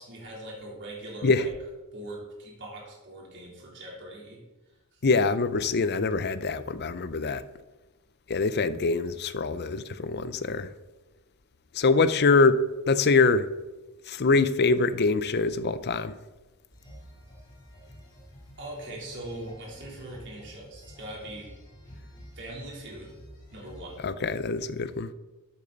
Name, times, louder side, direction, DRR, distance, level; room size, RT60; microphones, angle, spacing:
voice 1, 0.0-1.5 1.9-4.4 4.9-5.0 18.6-21.5 22.4-23.2 23.5-24.1, right 1 dB, 55° right, 3.6 m, -41 dB
voice 2, 5.0-7.4 8.3-10.7 11.7-12.6 12.9-13.5 14.1-16.2 24.0-25.1, left 4 dB, 50° left, 0.6 m, -24 dB
sound 1, 16.7-24.1, equal, 20° left, 3.3 m, -49 dB
13.5 x 8.5 x 4.1 m
head